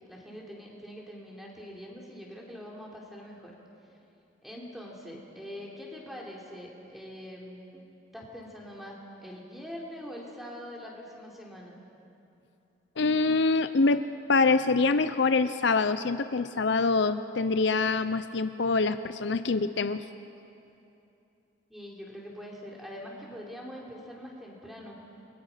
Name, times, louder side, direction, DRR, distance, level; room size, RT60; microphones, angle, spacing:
voice 1, 0.1-3.5 4.4-7.8 8.1-11.8 21.7-25.0, equal, ahead, -3 dB, 3.7 m, -43 dB
voice 2, 13.0-14.0 14.3-20.0, left 3 dB, 65° left, 11 dB, 0.6 m, -25 dB
29.5 x 22.5 x 5.8 m, 2.8 s
head